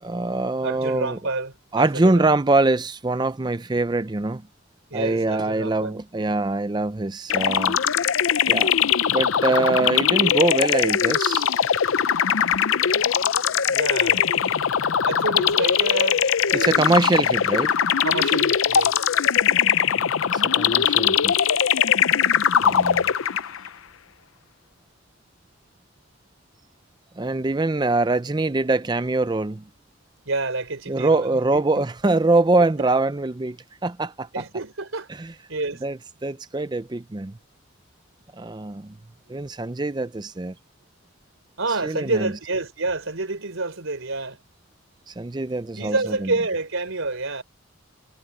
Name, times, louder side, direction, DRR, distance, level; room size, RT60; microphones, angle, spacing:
voice 1, 0.0-1.2 1.7-4.5 4.9-7.8 8.5-8.7 9.1-11.5 16.5-17.7 20.3-21.3 22.6-23.1 27.2-29.6 30.9-33.6 33.8-34.4 35.1-35.3 35.8-37.4 38.4-39.0 39.3-40.5 41.8-42.3 45.1-46.3, right 2 dB, 20° right, 0.4 m, -23 dB
voice 2, 0.6-2.2 4.9-6.0 13.7-14.3 14.8-16.8 18.0-19.0 30.2-31.8 32.8-32.9 34.3-35.1 35.5-35.8 41.6-44.4 45.8-47.4, right 3 dB, 75° right, 3.6 m, -28 dB
sound 1, 7.3-23.7, left 8 dB, 70° left, 0.6 m, -21 dB
head